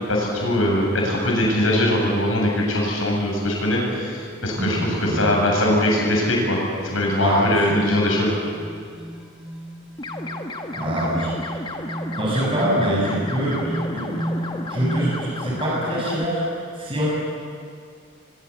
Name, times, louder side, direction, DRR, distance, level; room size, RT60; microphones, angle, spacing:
voice 1, 0.0-8.4, left 1 dB, 90° left, -1 dB, 7.8 m, -21 dB
sound 1, 3.1-3.3 3.8-4.0 4.5-4.6 4.9-5.0 5.4-15.2, right 1 dB, 5° right, 2.9 m, -34 dB
voice 2, 4.5-5.3 7.2-7.6 10.7-11.8 12.2-14.2 14.7-16.4 16.8-17.1, right 1 dB, 25° right, -4 dB, 7.5 m, -25 dB
sound 2, 10.0-16.3, left 2 dB, 25° left, 1.5 m, -33 dB
23.0 x 23.0 x 8.5 m, 2.2 s
head